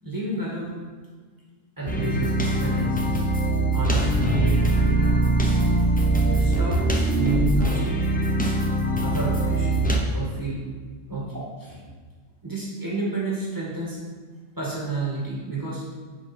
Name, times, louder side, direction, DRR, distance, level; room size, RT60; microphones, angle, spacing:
voice 1, 0.0-0.7 1.8-3.2 3.7-5.1 6.3-6.8 7.1-8.0 9.0-9.8 10.1-10.6 11.1-11.8 12.4-14.0 14.6-15.8, right 3 dB, 15° right, -5 dB, 2.2 m, -30 dB
sound 1, 1.9-10.0, right 2 dB, 10° left, 0.7 m, -22 dB
10.0 x 4.7 x 4.5 m, 1.5 s
omnidirectional pair, 1.3 m